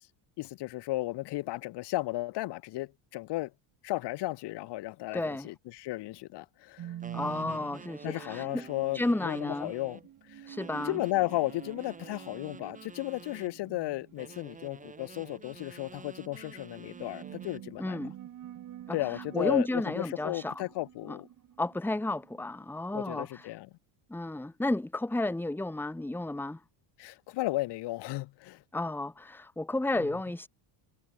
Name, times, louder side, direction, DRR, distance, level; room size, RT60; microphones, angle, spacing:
voice 1, 0.4-3.5 3.8-6.9 7.4-7.7 8.0-10.0 10.3-10.5 10.8-18.0 18.9-21.3 22.9-23.7 27.0-28.6, left 18 dB, 55° left, 1.6 m, -34 dB
voice 2, 5.1-5.5 7.1-8.6 8.9-9.7 10.5-11.0 17.8-18.1 18.9-20.6 21.1-21.2 21.6-23.5 24.1-26.6 28.7-30.5, left 2 dB, 5° left, 2.2 m, -32 dB
sound 1, 6.8-23.4, right 11 dB, 40° right, 3.2 m, -48 dB
sound 2, 7.0-10.1 10.6-13.6 14.2-17.7, right 5 dB, 15° right, 2.6 m, -49 dB
cardioid pair, 160°, 49 cm